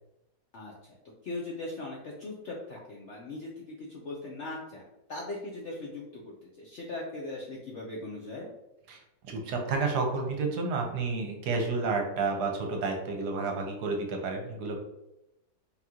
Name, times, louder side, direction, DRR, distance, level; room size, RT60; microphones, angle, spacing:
voice 1, 0.5-0.9 1.2-4.8 5.1-8.5, left 2 dB, 65° left, -3 dB, 0.7 m, -39 dB
voice 2, 9.3-14.8, right 4 dB, 70° right, 2 dB, 1.2 m, -30 dB
3.8 x 2.9 x 3.6 m, 0.89 s
omnidirectional pair, 1.9 m